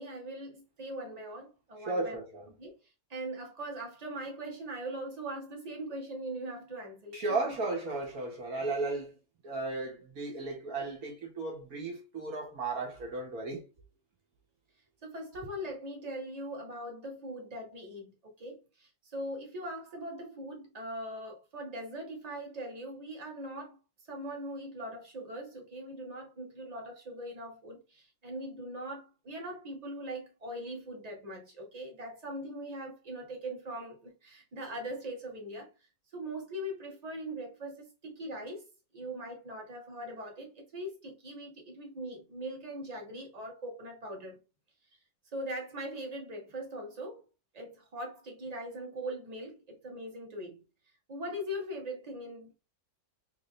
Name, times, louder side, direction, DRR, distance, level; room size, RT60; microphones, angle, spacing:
voice 1, 0.0-2.2 2.6-2.7 3.1-7.2 7.4-7.5 15.0-23.8 24.1-35.7 36.1-38.7 38.9-44.4 45.3-47.2 47.5-50.6 51.1-52.5, right 1 dB, 25° right, 1.2 m, -41 dB
voice 2, 1.8-2.5 7.1-9.2 9.4-13.6 15.4-15.5, right 3 dB, 60° right, 1.8 m, -35 dB
4.3 x 2.7 x 3.2 m
omnidirectional pair, 1.8 m